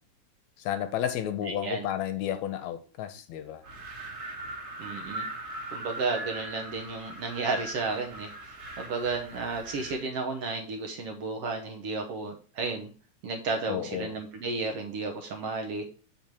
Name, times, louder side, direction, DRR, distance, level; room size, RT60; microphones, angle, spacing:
voice 1, 0.6-3.6 13.7-14.2, left 10 dB, 80° left, 1.9 m, -32 dB
voice 2, 1.4-1.9 4.8-5.2 5.7-12.9 13.2-15.8, right 3 dB, 65° right, 1.6 m, -33 dB
Wind, 3.6-10.1, right 2 dB, 50° right, 2.7 m, -40 dB
7.1 x 5.2 x 4.5 m
omnidirectional pair, 3.5 m